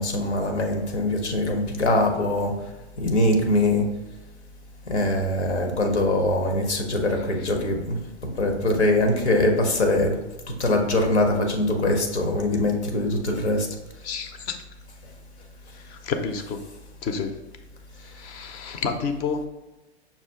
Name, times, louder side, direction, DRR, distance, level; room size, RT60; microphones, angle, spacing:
voice 1, 0.0-2.6 3.0-3.9 4.8-10.2 10.5-13.7, left 1 dB, 85° left, 3 dB, 1.0 m, -23 dB
voice 2, 14.0-14.6 15.7-16.6 17.0-17.4 18.0-19.5, left 5 dB, 25° left, 7 dB, 0.4 m, -30 dB
5.6 x 2.4 x 3.5 m, 1.1 s
hypercardioid pair, 110°, 33 cm